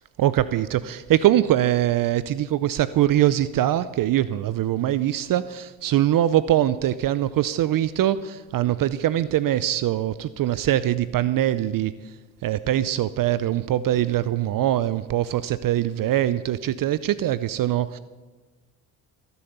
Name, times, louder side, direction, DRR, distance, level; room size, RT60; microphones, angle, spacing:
voice 1, 0.2-11.9 12.4-18.0, right 12 dB, 55° right, 16 dB, 0.6 m, -22 dB
16.5 x 7.1 x 8.1 m, 1.3 s
supercardioid pair, 60°, 39 cm